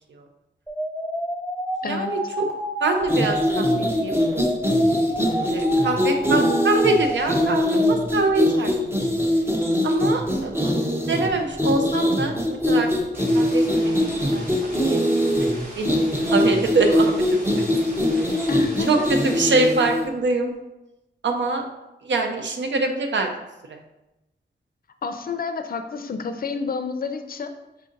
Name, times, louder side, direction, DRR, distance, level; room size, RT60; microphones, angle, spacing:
sound 1, 0.7-8.0, equal, 5° left, 1.0 m, -29 dB
voice 1, 1.8-2.4 2.8-4.2 5.4-9.0 9.8-12.9 13.3-15.0 15.7-15.9 16.2-17.7 18.1-18.5 18.9-20.5 21.2-21.6 22.0-23.3 23.7-23.8, right 3 dB, 80° right, 4 dB, 0.6 m, -24 dB
sound 2, 3.0-20.1, left 1 dB, 10° right, 0.6 m, -22 dB
sound 3, 13.1-19.7, right 1 dB, 45° right, 1.3 m, -40 dB
voice 2, 18.5-19.1 25.0-27.5, left 4 dB, 50° left, 8 dB, 0.4 m, -29 dB
5.4 x 2.5 x 3.8 m, 0.96 s
wide cardioid pair, 150°, 19 cm